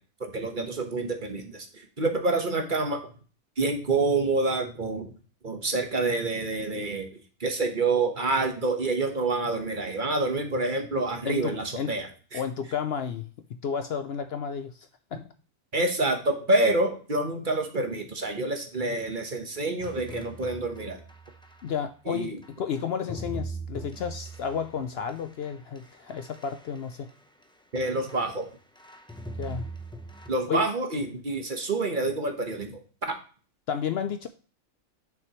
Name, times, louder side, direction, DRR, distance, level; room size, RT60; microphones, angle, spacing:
voice 1, 0.2-1.7 2.0-3.1 3.6-5.1 5.4-12.4 15.7-21.0 22.1-22.4 27.7-28.5 30.3-32.8 33.1-33.2, right 2 dB, 40° right, 4 dB, 1.3 m, -27 dB
voice 2, 11.2-12.0 12.3-13.3 13.6-15.3 21.6-27.1 29.4-29.7 30.5-30.7 33.7-34.3, left 7 dB, 60° left, 9 dB, 0.7 m, -32 dB
sound 1, 19.8-21.8 22.4-27.4 27.7-28.5 28.7-30.3, right 2 dB, 5° left, 0.6 m, -41 dB
8.7 x 6.5 x 3.0 m, 0.39 s
omnidirectional pair, 1.3 m